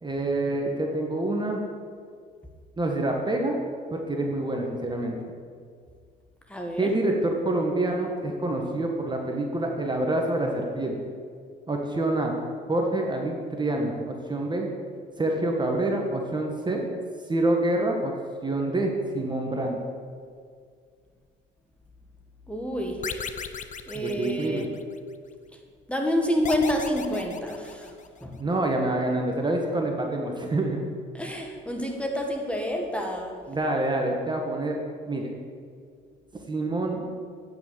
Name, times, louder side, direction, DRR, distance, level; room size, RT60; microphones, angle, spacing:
voice 1, 0.0-1.6 2.8-3.6 3.9-5.1 6.8-11.0 11.7-12.4 12.7-14.7 15.2-16.8 17.3-18.1 18.4-19.8 23.9-24.7 28.4-30.8 33.5-35.3 36.5-37.1, right 2 dB, 20° right, 1 dB, 1.4 m, -27 dB
voice 2, 6.5-6.9 22.5-23.1 23.9-24.7 25.9-27.9 28.2-28.4 31.1-33.4, equal, 5° left, 2 dB, 1.6 m, -28 dB
sound 1, 23.0-25.0 26.4-28.2, left 7 dB, 40° left, 0.7 m, -36 dB
9.4 x 6.1 x 6.7 m, 2.1 s
supercardioid pair, 80°, 21 cm